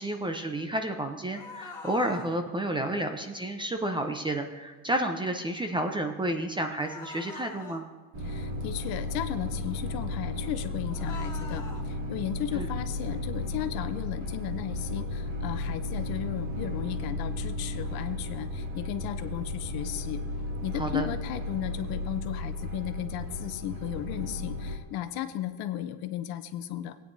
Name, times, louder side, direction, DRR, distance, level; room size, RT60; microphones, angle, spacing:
voice 1, 0.0-7.8 12.5-12.7 20.7-21.1, right 1 dB, 10° right, 6 dB, 0.6 m, -31 dB
sound 1, 1.3-2.3 6.8-7.8 10.9-11.8, left 4 dB, 10° left, 2.3 m, -43 dB
sound 2, 8.1-24.8, left 2 dB, 45° right, 2.4 m, -34 dB
voice 2, 8.2-20.2 20.6-27.0, left 12 dB, 55° left, 10 dB, 0.8 m, -35 dB
17.0 x 9.2 x 2.7 m, 1.3 s
supercardioid pair, 125°, 45 cm